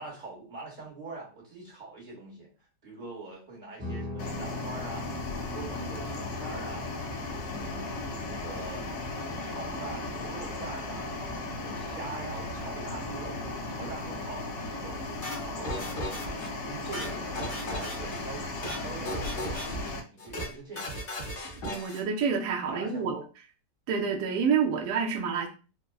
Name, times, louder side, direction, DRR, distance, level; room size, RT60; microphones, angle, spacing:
voice 1, 0.0-2.5 2.8-5.1 5.4-6.9 7.4-8.8 9.4-11.2 11.5-13.4 13.7-15.0 15.4-16.3 16.6-18.5 18.8-20.9 22.7-23.2, right 3 dB, 35° right, -4 dB, 1.0 m, -43 dB
Guitar, 3.8-13.1, left 4 dB, 10° right, 0.7 m, -43 dB
sound 1, 4.2-20.0, left 2 dB, 80° left, 1.3 m, -36 dB
sound 2, 15.2-16.5 16.8-18.2 18.5-18.8 19.1-19.9 20.2-20.5 20.8-22.0, equal, 60° left, 0.5 m, -36 dB
voice 2, 21.6-23.1 23.9-25.5, right 6 dB, 75° right, 1 dB, 1.1 m, -28 dB
3.6 x 2.0 x 2.2 m, 0.34 s
omnidirectional pair, 1.9 m